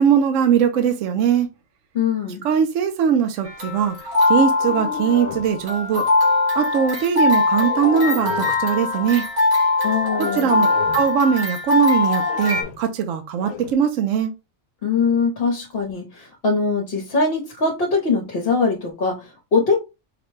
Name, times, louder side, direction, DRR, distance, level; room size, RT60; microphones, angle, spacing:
voice 1, 0.0-1.5 2.4-3.9 4.3-6.1 6.6-9.3 10.2-10.7 10.9-14.3, right 8 dB, 70° right, 1.0 m, -20 dB
voice 2, 1.9-2.4 9.8-10.5 14.8-19.7, left 4 dB, 50° left, 1.0 m, -22 dB
sound 1, 3.5-12.6, left 3 dB, 90° right, 1.9 m, -21 dB
sound 2, 4.3-5.6 7.4-8.7 9.9-11.1 12.0-12.9 13.4-13.7, left 8 dB, 80° left, 1.0 m, -33 dB
4.9 x 2.2 x 3.1 m
omnidirectional pair, 1.4 m